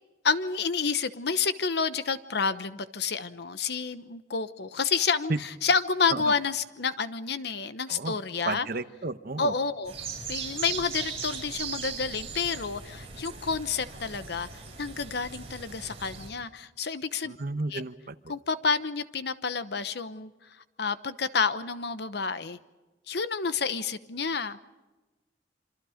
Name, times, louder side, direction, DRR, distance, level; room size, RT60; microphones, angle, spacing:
voice 1, 0.2-8.7 9.4-9.9 10.3-14.5 14.8-17.3 17.7-17.8 18.3-20.3 20.8-22.6 23.1-24.6, left 5 dB, 65° left, 12 dB, 1.0 m, -29 dB
voice 2, 8.5-9.5 17.3-18.1, right 3 dB, 55° right, 11 dB, 1.0 m, -32 dB
sound 1, 9.8-16.3, right 6 dB, 35° right, 6.4 m, -38 dB
27.0 x 26.0 x 5.1 m, 1.1 s
head